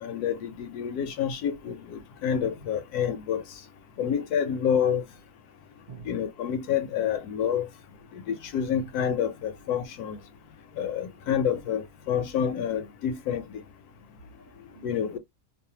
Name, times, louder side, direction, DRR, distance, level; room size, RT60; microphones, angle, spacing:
voice 1, 0.0-3.4 4.0-5.0 6.1-7.7 8.1-10.2 10.8-13.4 14.8-15.2, left 8 dB, 75° left, 1.0 m, -28 dB
voice 2, 5.7-6.1 8.2-8.5 10.1-11.3 14.2-15.0, right 3 dB, 45° right, 0.9 m, -51 dB
2.7 x 2.0 x 2.8 m
omnidirectional pair, 1.7 m